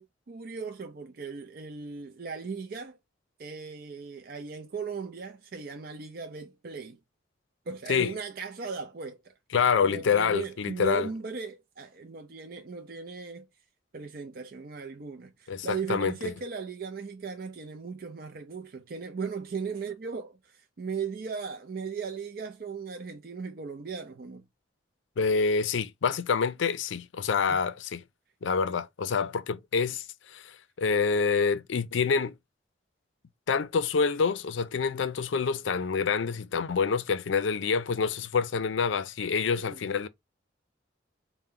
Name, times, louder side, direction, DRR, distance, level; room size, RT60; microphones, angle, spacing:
voice 1, 0.0-3.0 3.4-7.0 7.7-9.3 9.8-13.5 13.9-24.4 27.5-27.6 39.6-39.8, right 5 dB, 50° right, 0.4 m, -37 dB
voice 2, 9.5-11.1 15.5-16.3 25.2-28.0 28.4-32.4 33.5-40.1, left 5 dB, 75° left, 0.4 m, -27 dB
4.3 x 2.1 x 3.6 m
head